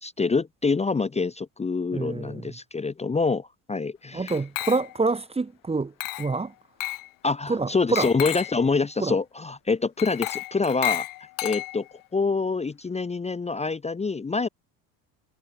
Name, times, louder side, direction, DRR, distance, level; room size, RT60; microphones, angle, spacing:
voice 1, 0.0-4.3 7.2-11.1 11.4-14.5, left 4 dB, 15° left, 0.9 m, -26 dB
voice 2, 1.9-2.5 4.1-6.5 7.5-8.1 9.0-9.2, right 3 dB, 15° right, 1.1 m, -27 dB
Glass, 4.3-5.1 6.0-6.4 6.8-7.1 8.0-8.6 10.0-12.0, left 19 dB, 50° left, 0.8 m, -32 dB
hypercardioid pair, 80°, 44 cm